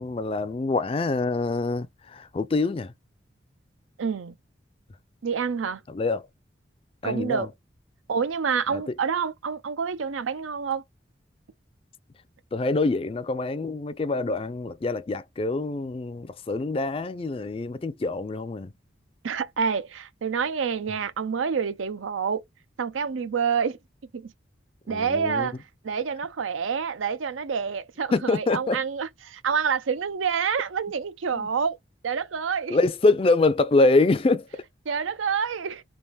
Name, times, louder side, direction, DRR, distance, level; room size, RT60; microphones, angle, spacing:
voice 1, 0.0-2.9 5.9-6.2 7.0-7.5 8.7-8.8 12.5-18.7 24.9-25.5 28.1-28.8 31.3-31.5 32.7-34.6, left 3 dB, 30° left, 0.3 m, -25 dB
voice 2, 4.0-4.4 5.2-5.8 7.0-7.5 8.1-10.8 19.2-22.4 22.8-23.8 24.1-24.3 24.9-25.6 25.8-31.8 32.0-32.8 34.9-35.8, right 6 dB, 90° right, 0.5 m, -27 dB
3.5 x 2.5 x 4.0 m
head